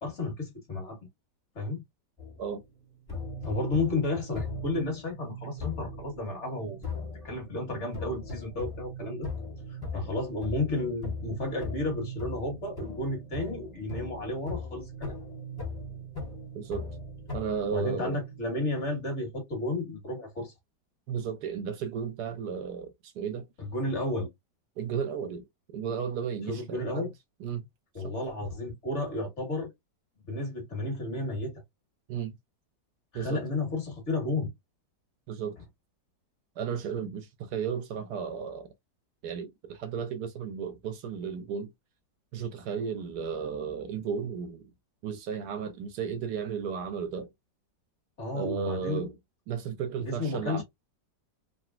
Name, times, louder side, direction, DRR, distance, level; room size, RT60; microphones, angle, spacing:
voice 1, 0.0-1.0 1.5-1.8 3.4-6.8 7.2-9.3 9.7-15.1 17.7-20.5 23.6-24.3 26.5-27.1 27.9-29.7 30.3-31.5 33.1-34.5 48.2-49.1 50.0-50.6, left 2 dB, 40° left, 1.7 m, -32 dB
sound 1, 2.2-2.7 3.1-18.4, left 2 dB, 15° left, 0.9 m, -39 dB
voice 2, 16.5-16.9 17.3-18.2 21.1-23.5 24.8-25.4 25.7-27.1 27.4-27.6 28.0-28.1 32.1-32.4 33.1-33.4 35.3-35.6 36.6-38.7 39.2-41.7 42.3-44.7 45.0-47.3 48.3-49.1 49.5-50.6, right 7 dB, 70° right, 1.1 m, -34 dB
3.9 x 2.1 x 2.3 m
omnidirectional pair, 1.9 m